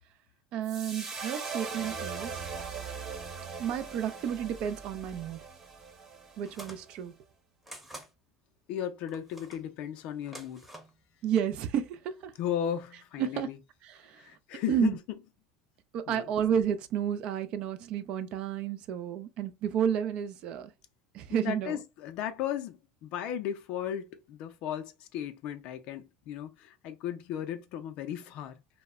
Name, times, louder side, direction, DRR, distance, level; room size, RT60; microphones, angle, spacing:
voice 1, 0.5-2.4 3.6-5.4 6.4-7.1 11.2-12.3 13.2-13.5 13.8-14.3 14.7-15.0 15.9-20.7 21.1-21.8, right 9 dB, 55° right, 0.3 m, -31 dB
sound 1, 0.6-7.0, right 5 dB, 35° right, 0.9 m, -40 dB
sound 2, 6.5-6.9 7.6-8.1 9.1-9.6 10.2-10.9, right 1 dB, 5° right, 0.8 m, -47 dB
voice 2, 8.7-10.7 12.4-13.6 14.1-15.0 16.1-16.3 21.3-28.6, left 10 dB, 60° left, 0.4 m, -35 dB
2.1 x 2.0 x 3.5 m
supercardioid pair, 105°, 2 cm